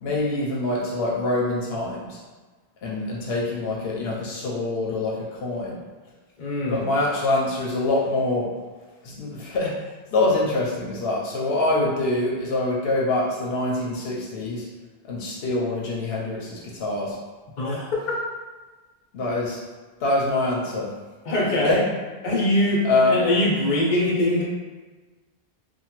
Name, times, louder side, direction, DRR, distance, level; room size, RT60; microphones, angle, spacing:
voice 1, 0.0-2.2 2.8-5.8 6.7-8.5 9.0-9.7 10.1-14.7 15.1-17.2 19.1-19.6 20.0-20.9 21.6-21.8 22.8-23.2, left 2 dB, 80° left, -4 dB, 0.8 m, -25 dB
voice 2, 6.4-6.8 17.6-18.0 21.2-21.9 22.2-24.4, left 1 dB, 50° left, -4 dB, 0.8 m, -22 dB
2.9 x 2.2 x 2.9 m, 1.3 s
omnidirectional pair, 1.0 m